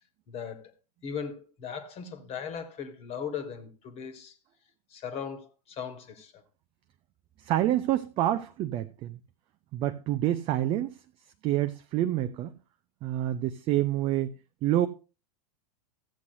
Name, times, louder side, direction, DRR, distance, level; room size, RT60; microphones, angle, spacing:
voice 1, 0.3-0.7 1.0-4.3 4.9-6.4, left 7 dB, 30° left, 1.5 m, -38 dB
voice 2, 7.4-9.2 9.7-11.0 11.4-12.5 13.0-14.3 14.6-14.9, right 13 dB, 25° right, 0.4 m, -27 dB
14.0 x 8.2 x 2.6 m
figure-of-eight pair, 95°, 21 cm